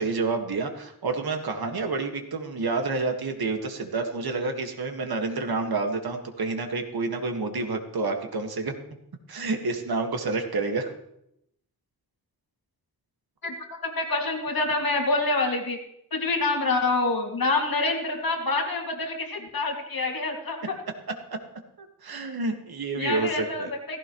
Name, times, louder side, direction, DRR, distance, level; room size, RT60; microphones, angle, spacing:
voice 1, 0.0-8.7 9.3-10.9 21.3-21.4 21.8-23.7, right 3 dB, 70° right, 4 dB, 1.8 m, -29 dB
voice 2, 13.4-15.8 16.1-20.7 23.0-24.0, left 3 dB, 65° left, 2 dB, 2.3 m, -27 dB
16.5 x 15.5 x 3.1 m, 0.77 s
wide cardioid pair, 120°, 39 cm